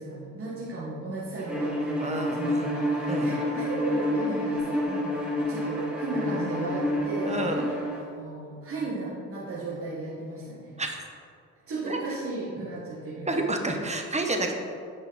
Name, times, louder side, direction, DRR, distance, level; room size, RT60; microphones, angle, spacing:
voice 1, 0.0-5.2 5.5-10.7 11.7-13.3, right 2 dB, 45° right, -7 dB, 1.7 m, -35 dB
Bowed string instrument, 1.5-8.0, left 1 dB, 5° right, 1.6 m, -29 dB
voice 2, 2.0-2.7 3.1-3.3 7.2-7.7 10.8-11.0 11.9-12.0 13.3-14.5, right 2 dB, 20° right, 3 dB, 1.0 m, -29 dB
9.6 x 5.4 x 4.1 m, 2.3 s
cardioid pair, 90°, 30 cm